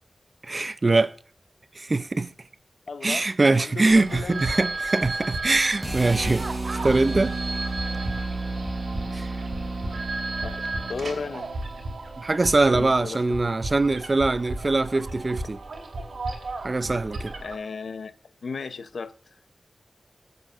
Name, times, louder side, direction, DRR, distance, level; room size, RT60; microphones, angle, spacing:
voice 1, 0.5-1.1 1.8-2.3 3.0-7.3 9.1-9.3 12.2-15.6 16.6-17.3, right 3 dB, 40° right, 0.5 m, -23 dB
voice 2, 2.9-4.4 10.4-11.5 12.7-13.5 17.4-18.1 18.4-19.1, left 4 dB, 85° left, 0.7 m, -35 dB
sound 1, 3.8-17.6, right 2 dB, 80° right, 2.9 m, -34 dB
sound 2, 5.8-12.0, right 2 dB, 10° right, 1.2 m, -32 dB
21.5 x 8.0 x 2.5 m
wide cardioid pair, 95°, 0 cm